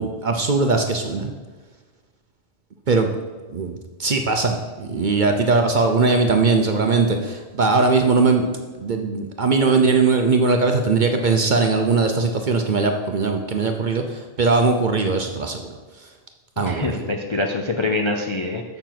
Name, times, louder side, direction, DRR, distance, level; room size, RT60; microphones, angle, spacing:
voice 1, 0.0-1.3 2.9-3.1 3.5-3.7 4.0-8.5 8.8-15.6 16.6-17.0, right 4 dB, 45° right, 4 dB, 0.7 m, -20 dB
voice 2, 16.6-18.6, left 2 dB, 40° left, 2 dB, 0.4 m, -24 dB
7.0 x 6.7 x 5.9 m, 1.3 s
omnidirectional pair, 1.3 m